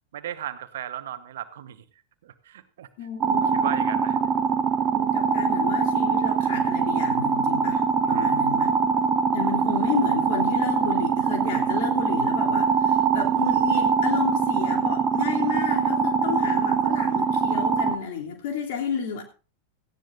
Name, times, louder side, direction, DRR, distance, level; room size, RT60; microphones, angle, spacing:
voice 1, 0.1-1.8 2.2-2.9 3.4-4.2 8.0-8.4, right 11 dB, 60° right, 1.2 m, -36 dB
voice 2, 3.0-3.6 4.9-8.7 9.3-19.2, left 7 dB, 50° left, 3.1 m, -31 dB
sound 1, 3.2-18.0, right 6 dB, 25° right, 1.2 m, -23 dB
18.0 x 14.5 x 2.6 m
figure-of-eight pair, 90°, 0 cm